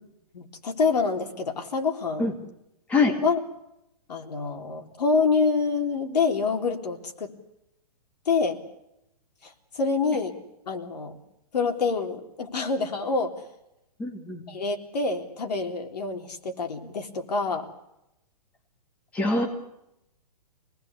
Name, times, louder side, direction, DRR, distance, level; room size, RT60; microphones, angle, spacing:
voice 1, 0.3-2.3 3.2-3.4 4.1-7.3 8.3-8.6 9.4-10.3 10.7-11.1 11.5-13.3 14.5-17.7, left 4 dB, 75° left, 5 dB, 3.7 m, -26 dB
voice 2, 14.0-14.4 19.1-19.5, left 3 dB, 5° left, 1 dB, 2.0 m, -23 dB
26.5 x 19.5 x 8.3 m, 0.85 s
hypercardioid pair, 180°, 21 cm